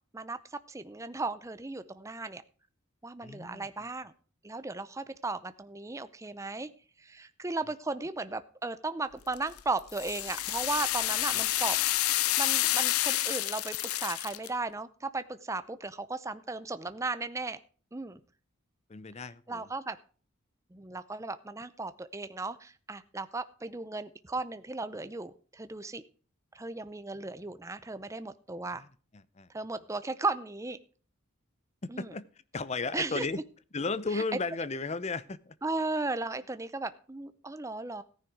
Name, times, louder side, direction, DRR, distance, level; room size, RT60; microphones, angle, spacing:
voice 1, 0.7-2.4 3.0-4.1 4.4-6.7 7.0-11.8 12.4-17.6 17.9-18.2 19.5-20.0 20.7-26.0 26.5-28.8 29.5-30.8 31.9-32.1 32.9-33.3 34.1-34.2 35.6-38.0, right 3 dB, 15° right, 12 dB, 0.6 m, -36 dB
voice 2, 3.2-3.9 11.3-11.4 18.9-19.7 28.8-28.9 29.4-29.5 31.8-32.2 32.5-33.4 33.7-35.5, left 3 dB, 30° left, 17 dB, 0.6 m, -34 dB
sound 1, 9.3-14.5, left 14 dB, 85° left, 0.6 m, -29 dB
14.5 x 10.0 x 4.7 m, 0.40 s
head